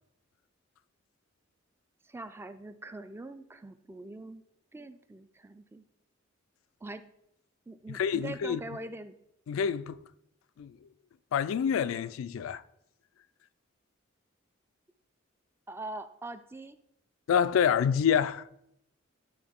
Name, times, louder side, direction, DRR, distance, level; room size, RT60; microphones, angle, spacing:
voice 1, 2.0-4.4 4.7-5.8 6.8-7.0 7.7-9.1 15.7-16.8, right 2 dB, 10° right, 0.3 m, -43 dB
voice 2, 7.9-8.6 9.5-10.0 10.6-10.7 11.3-12.6 17.3-18.4, left 7 dB, 90° left, 0.3 m, -27 dB
11.0 x 3.8 x 3.6 m
head